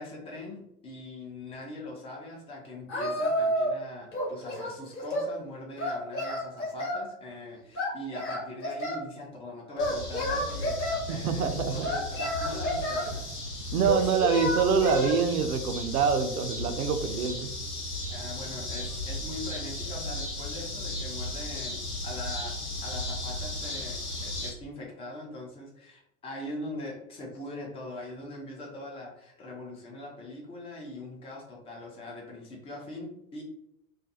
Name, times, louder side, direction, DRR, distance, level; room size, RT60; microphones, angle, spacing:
voice 1, 0.0-13.3 18.1-33.4, left 1 dB, 15° left, -2 dB, 0.4 m, -42 dB
Singing, 2.9-3.8 4.1-5.3 5.8-7.0 7.7-9.0 9.8-11.0 11.8-13.1 13.8-15.2, left 1 dB, 30° left, 1.1 m, -30 dB
sound 1, 9.8-24.5, left 1 dB, 85° left, 0.9 m, -36 dB
voice 2, 11.1-11.9 13.7-17.5, right 6 dB, 70° right, 7 dB, 0.5 m, -26 dB
2.4 x 2.1 x 2.6 m, 0.77 s
figure-of-eight pair, 90°, 45 cm